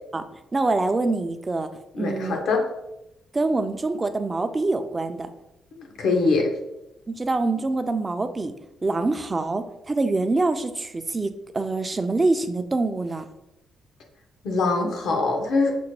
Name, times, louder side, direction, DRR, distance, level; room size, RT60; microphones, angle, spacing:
voice 1, 0.5-1.7 2.0-2.4 3.3-5.3 7.1-8.5 8.8-13.3, right 3 dB, 25° right, 9 dB, 0.4 m, -25 dB
voice 2, 1.9-2.6 6.0-6.5 14.4-15.7, left 3 dB, 75° left, 3 dB, 0.8 m, -22 dB
5.9 x 2.1 x 3.1 m, 0.88 s
cardioid pair, 90°, 0 cm